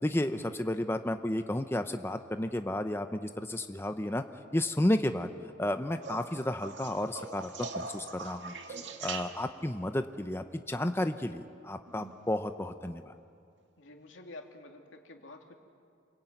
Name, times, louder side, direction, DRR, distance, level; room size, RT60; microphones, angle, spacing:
voice 1, 0.0-4.2 4.5-5.3 5.6-8.5 9.0-13.1, left 1 dB, 10° left, 7 dB, 0.7 m, -32 dB
sound 1, 6.0-9.7 11.9-12.4 14.0-14.1, right 4 dB, 65° right, 2.0 m, -42 dB
voice 2, 13.8-15.5, left 2 dB, 80° left, 3 dB, 2.7 m, -49 dB
28.0 x 22.0 x 9.3 m, 2.4 s
head